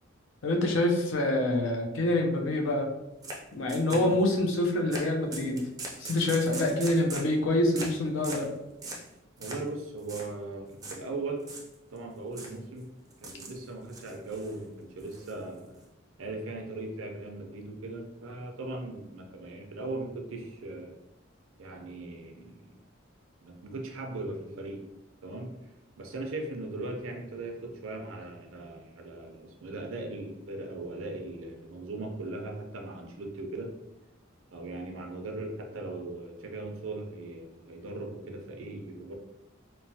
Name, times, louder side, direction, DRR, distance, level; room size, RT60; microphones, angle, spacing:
voice 1, 0.4-2.9 3.5-5.6 6.0-8.5, left 1 dB, 70° left, 1 dB, 0.5 m, -26 dB
sound 1, 3.2-3.4 3.7-4.4 4.9-5.1 5.3-7.3 7.7-8.0 8.2-8.5 8.8-9.1 9.4-9.7 10.0-10.3 10.8-11.0 11.4-12.0 12.3-12.6 13.1-13.6 13.9-14.6 15.0-15.8, right 2 dB, 20° right, 0.4 m, -40 dB
voice 2, 9.4-11.5 11.9-12.9 13.2-15.8 16.2-20.9 21.6-22.8 23.4-24.8 25.2-25.5 26.0-33.7 34.5-39.1, right 2 dB, 85° right, 3 dB, 0.5 m, -39 dB
3.0 x 2.1 x 2.7 m, 0.91 s
head